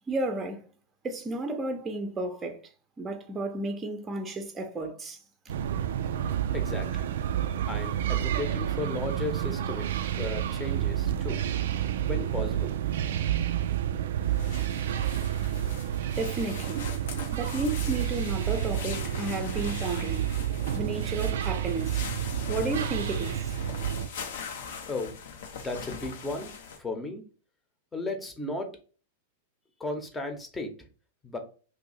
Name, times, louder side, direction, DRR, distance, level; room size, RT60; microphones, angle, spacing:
voice 1, 0.1-0.6 1.0-2.6 3.0-5.2 16.1-16.8 17.3-20.3 20.7-22.0 22.5-23.6, right 2 dB, 20° right, 0.7 m, -33 dB
sound 1, 5.5-24.1, right 10 dB, 65° right, 0.3 m, -30 dB
voice 2, 6.5-7.1 7.7-9.9 10.1-11.4 12.0-12.7 24.9-25.2 25.6-26.5 26.8-27.2 27.9-28.7 29.8-30.7 31.2-31.4, left 2 dB, 15° left, 0.9 m, -35 dB
sound 2, 14.2-26.8, left 6 dB, 65° left, 0.7 m, -42 dB
2.7 x 2.7 x 4.0 m
hypercardioid pair, 105°, 0 cm